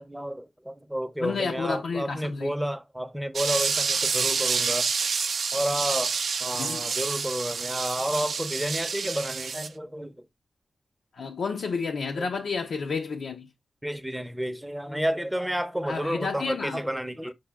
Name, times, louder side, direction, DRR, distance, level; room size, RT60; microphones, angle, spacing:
voice 1, 0.0-4.9 5.5-6.2 6.4-10.1 12.2-12.3 13.8-17.3, equal, 5° right, 0.6 m, -31 dB
voice 2, 1.2-2.5 6.6-6.8 11.1-13.5 15.9-16.9, left 5 dB, 85° left, 0.5 m, -31 dB
sound 1, 3.3-9.7, right 5 dB, 75° right, 0.4 m, -28 dB
6.2 x 2.2 x 3.4 m
wide cardioid pair, 115°, 0 cm